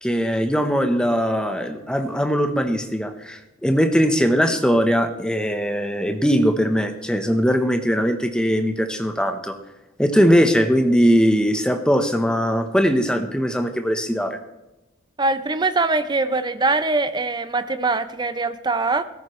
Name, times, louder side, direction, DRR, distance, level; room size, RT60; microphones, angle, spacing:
voice 1, 0.0-9.6 10.0-14.4, equal, 5° left, 6 dB, 0.9 m, -20 dB
voice 2, 15.2-19.0, right 3 dB, 20° right, 11 dB, 0.6 m, -22 dB
16.5 x 14.0 x 3.2 m, 1.0 s
head